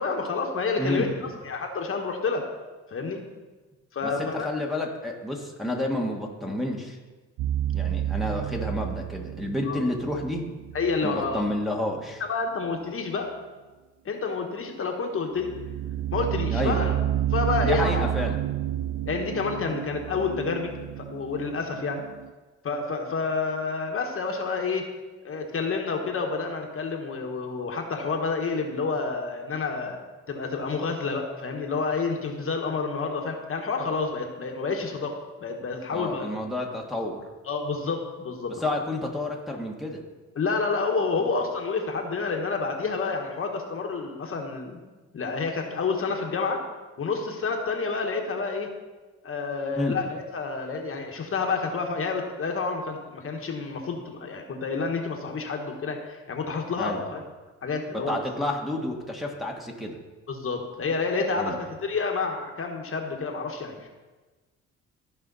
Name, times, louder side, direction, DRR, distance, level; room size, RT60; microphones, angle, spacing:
voice 1, 0.0-2.5 2.9-3.2 3.9-4.5 9.7-9.8 10.7-11.5 12.3-13.3 14.0-15.5 16.1-17.0 17.3-18.1 19.0-20.7 21.0-22.0 22.6-24.9 25.2-30.0 30.3-36.3 37.5-38.5 40.4-44.8 45.1-46.6 47.0-48.7 49.2-57.2 57.6-58.2 60.3-63.9, left 4 dB, 45° left, 2 dB, 1.3 m, -29 dB
voice 2, 0.8-1.2 4.0-7.0 7.7-10.5 11.0-12.2 16.5-16.9 17.6-18.4 35.9-37.2 38.6-40.0 49.8-50.0 56.8-57.0 58.1-60.0 61.4-61.6, left 1 dB, ahead, -1 dB, 1.5 m, -30 dB
Pulsing Analog Drone, 7.4-11.5 15.4-22.3, right 12 dB, 70° right, 0.5 m, -30 dB
14.0 x 5.0 x 4.1 m, 1.3 s
cardioid pair, 90°, 30 cm